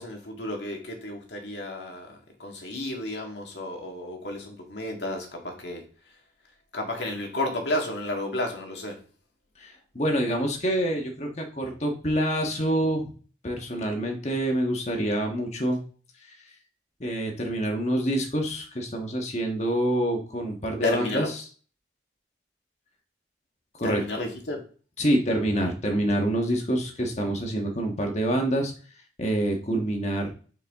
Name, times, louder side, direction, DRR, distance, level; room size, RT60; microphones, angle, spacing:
voice 1, 0.0-5.8 6.7-9.0 20.8-21.3 23.8-24.6, left 2 dB, 80° left, 1 dB, 1.8 m, -32 dB
voice 2, 9.6-13.1 13.4-15.8 16.3-16.4 17.0-21.3 23.8-24.0 25.0-28.7 29.2-30.3, right 1 dB, 40° left, 2 dB, 1.4 m, -26 dB
7.1 x 4.8 x 3.6 m, 0.40 s
head